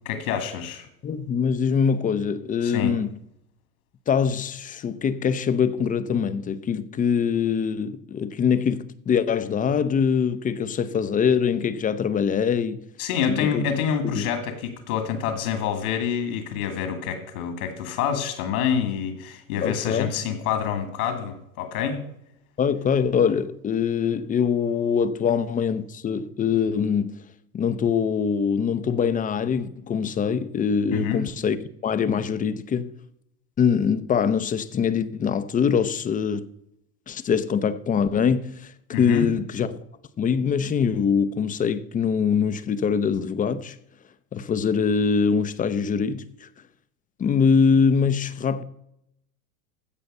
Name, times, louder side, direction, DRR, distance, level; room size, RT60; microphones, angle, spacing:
voice 1, 0.1-0.9 2.6-2.9 13.0-22.0 30.9-31.2 38.9-39.3, left 7 dB, 70° left, 2.3 m, -27 dB
voice 2, 1.0-3.1 4.1-12.8 13.3-13.6 14.1-14.3 19.6-20.1 22.6-27.2 27.5-31.6 31.8-32.9 33.6-36.5 37.1-39.8 40.2-43.8 44.3-46.5 47.2-48.6, left 6 dB, 20° left, 0.6 m, -23 dB
15.5 x 5.7 x 5.4 m
hypercardioid pair, 110°, 45 cm